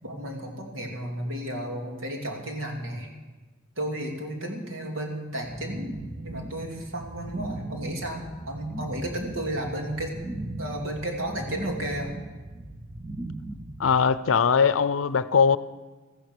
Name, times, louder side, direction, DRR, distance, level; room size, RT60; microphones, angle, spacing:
voice 1, 0.0-3.1 3.8-10.1 10.6-12.1, right 1 dB, 85° right, 1 dB, 2.7 m, -33 dB
sound 1, 5.4-14.0, right 2 dB, 20° right, 0.7 m, -38 dB
voice 2, 13.8-15.6, left 6 dB, 75° left, 15 dB, 0.5 m, -21 dB
14.0 x 12.0 x 6.7 m, 1.3 s
head